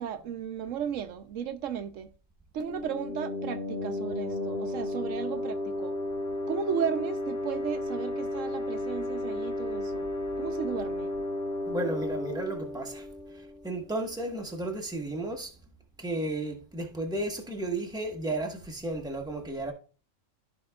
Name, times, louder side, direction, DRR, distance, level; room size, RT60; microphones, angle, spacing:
voice 1, 0.0-2.1 2.5-6.0 6.5-10.1 10.4-11.1, right 8 dB, 85° right, 1.1 m, -34 dB
sound 1, 2.6-14.0, left 1 dB, 50° left, 1.6 m, -33 dB
voice 2, 11.7-13.0 13.6-15.5 16.0-19.7, right 2 dB, 5° right, 1.1 m, -33 dB
14.0 x 5.1 x 2.3 m
omnidirectional pair, 1.3 m